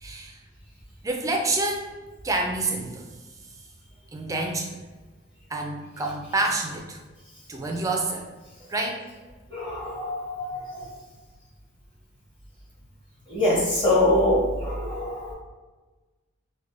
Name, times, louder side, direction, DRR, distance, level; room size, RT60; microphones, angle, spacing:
voice 1, 0.0-0.4 1.0-3.1 4.1-4.8 5.5-7.0 7.5-8.3 8.6-9.0, right 2 dB, 15° right, 2 dB, 0.3 m, -28 dB
voice 2, 9.5-10.9 13.3-15.3, left 1 dB, 25° left, -6 dB, 1.0 m, -24 dB
4.6 x 2.2 x 2.6 m, 1.2 s
head